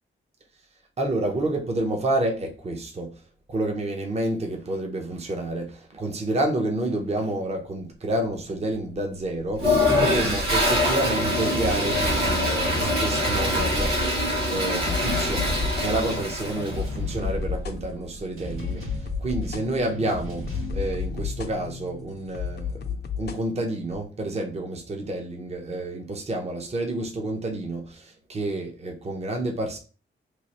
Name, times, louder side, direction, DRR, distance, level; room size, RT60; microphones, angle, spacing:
voice 1, 1.0-3.1 3.5-13.9 14.5-29.8, right 1 dB, 30° right, 0.6 m, -29 dB
Toilet flush, 9.6-16.8, left 1 dB, 50° right, 1.7 m, -24 dB
sound 1, 9.6-22.3, right 1 dB, 90° right, 1.4 m, -35 dB
sound 2, 14.8-23.4, left 7 dB, 50° left, 0.5 m, -34 dB
3.1 x 2.4 x 4.0 m
wide cardioid pair, 145°, 21 cm